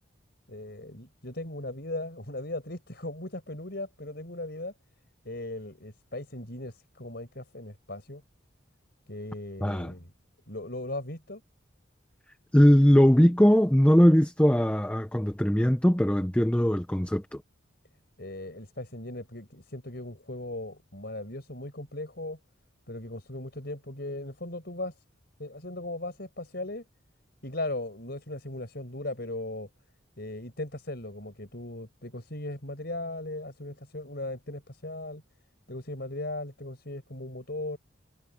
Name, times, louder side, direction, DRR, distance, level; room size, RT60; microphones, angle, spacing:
voice 1, 0.5-4.7 5.2-8.2 9.1-10.1 10.5-11.4 18.2-22.4 22.9-24.9 25.4-26.8 27.4-29.7 30.2-35.2 35.7-37.8, left 2 dB, 55° left, 5.3 m, -38 dB
voice 2, 9.6-9.9 12.5-17.2, equal, 5° left, 0.9 m, -20 dB
head